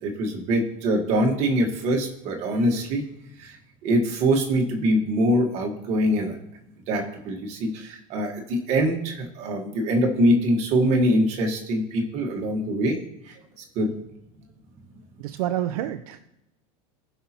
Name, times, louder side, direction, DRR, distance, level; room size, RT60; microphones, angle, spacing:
voice 1, 0.0-3.0 3.4-3.6 3.8-6.3 6.9-13.0 13.3-13.4 13.7-13.9, equal, 35° right, 2 dB, 1.5 m, -23 dB
voice 2, 15.2-16.2, right 12 dB, 65° right, 9 dB, 0.6 m, -28 dB
16.0 x 5.6 x 2.9 m, 0.88 s
supercardioid pair, 180°, 20 cm